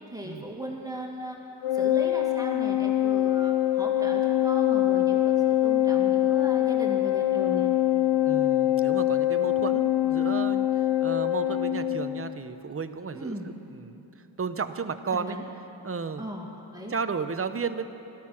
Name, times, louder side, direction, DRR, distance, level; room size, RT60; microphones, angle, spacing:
voice 1, 0.1-1.4 1.7-7.7 13.1-13.5 15.1-15.4 16.2-16.5 16.7-16.9, equal, 5° right, -1 dB, 2.2 m, -37 dB
Organ, 1.6-12.4, left 13 dB, 60° left, 0.6 m, -24 dB
voice 2, 8.2-13.4 13.7-15.4 15.8-16.3 16.9-17.9, right 5 dB, 30° right, 10 dB, 0.7 m, -33 dB
15.0 x 12.0 x 5.9 m, 2.9 s
wide cardioid pair, 60°, 48 cm